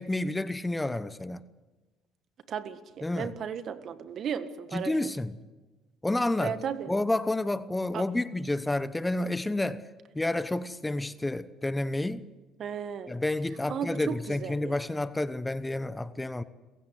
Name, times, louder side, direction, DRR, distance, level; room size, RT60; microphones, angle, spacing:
voice 1, 0.0-1.4 3.0-3.3 4.7-5.4 6.0-6.6 6.9-9.9 10.1-12.3 13.1-16.4, left 2 dB, 15° left, 1.0 m, -30 dB
voice 2, 2.5-4.9 6.4-6.9 7.9-8.0 12.6-13.1 13.7-14.8, right 7 dB, 55° right, 1.7 m, -35 dB
28.0 x 16.0 x 8.1 m
supercardioid pair, 75°, 0 cm